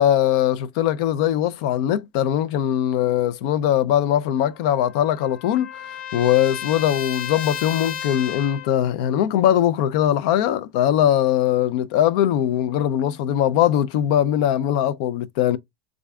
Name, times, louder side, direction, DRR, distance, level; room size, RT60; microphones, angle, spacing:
voice 1, 0.0-5.7 6.1-15.6, left 11 dB, 60° left, 0.4 m, -21 dB
Trumpet, 4.4-8.8, left 9 dB, 35° left, 0.7 m, -33 dB
3.4 x 2.5 x 3.3 m
supercardioid pair, 140°, 4 cm